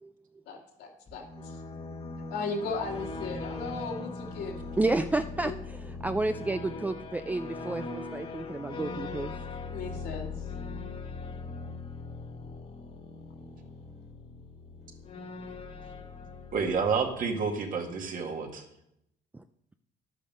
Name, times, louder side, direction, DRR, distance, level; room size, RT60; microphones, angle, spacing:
voice 1, 0.5-1.2 2.3-4.6 4.9-5.1 5.4-5.5 9.7-10.3, left 4 dB, 75° left, 1 dB, 2.4 m, -36 dB
sound 1, 1.1-17.7, left 3 dB, 35° left, 1.2 m, -40 dB
voice 2, 4.8-9.3 19.3-19.4, right 2 dB, 10° right, 9 dB, 0.4 m, -31 dB
voice 3, 16.5-18.6, right 5 dB, 55° right, 3 dB, 1.9 m, -29 dB
11.0 x 8.4 x 5.4 m, 0.80 s
cardioid pair, 110°, 17 cm